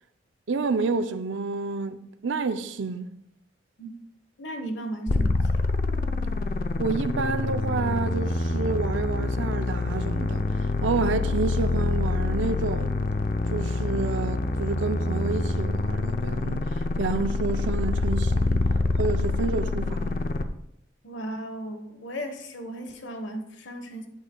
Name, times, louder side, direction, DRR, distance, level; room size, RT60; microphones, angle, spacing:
voice 1, 0.5-3.1 6.8-10.4 10.8-12.9 13.5-18.6 19.0-20.2, right 4 dB, 80° right, 0.5 m, -29 dB
voice 2, 4.4-5.7 21.0-24.1, right 1 dB, 75° left, 1.2 m, -36 dB
sound 1, 5.1-20.4, left 2 dB, 50° left, 0.6 m, -26 dB
14.5 x 8.1 x 2.3 m
head